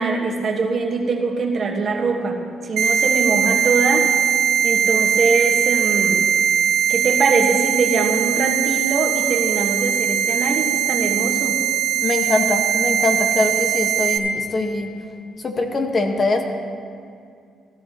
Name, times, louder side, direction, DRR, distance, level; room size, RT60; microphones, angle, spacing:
voice 1, 0.0-2.4 2.6-4.1 4.6-6.3 6.9-11.6, right 3 dB, 50° right, 1 dB, 1.5 m, -22 dB
sound 1, 2.8-14.2, right 9 dB, 90° right, 1.3 m, -20 dB
voice 2, 12.0-14.9 15.4-16.4, left 2 dB, 40° left, 3 dB, 1.4 m, -22 dB
16.0 x 12.5 x 3.0 m, 2.3 s
cardioid pair, 90°, 0 cm